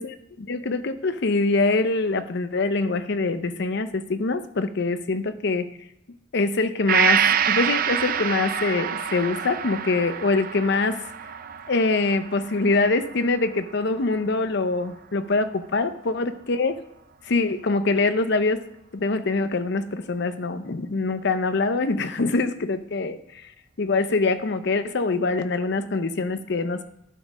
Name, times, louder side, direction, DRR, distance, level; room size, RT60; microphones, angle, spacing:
voice 1, 0.0-5.7 6.3-11.0 11.7-16.7 17.2-18.6 18.9-23.5 23.8-26.8, left 3 dB, 55° left, 11 dB, 0.6 m, -24 dB
Gong, 6.9-14.5 14.9-15.0, right 8 dB, 45° right, 0.5 m, -27 dB
11.0 x 5.3 x 5.0 m, 0.84 s
head